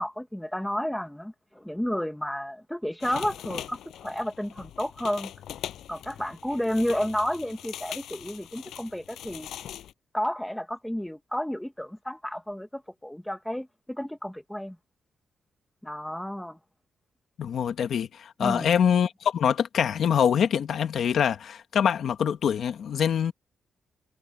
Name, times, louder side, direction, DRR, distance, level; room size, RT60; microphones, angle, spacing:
voice 1, 0.0-5.3 5.9-9.5 10.1-14.8 15.8-16.6 18.4-18.7, equal, 5° left, 1.6 m, -31 dB
sound 1, 3.0-9.9, left 11 dB, 90° left, 6.7 m, -41 dB
voice 2, 17.4-23.3, left 8 dB, 60° left, 1.7 m, -24 dB
wide cardioid pair, 155°, 0 cm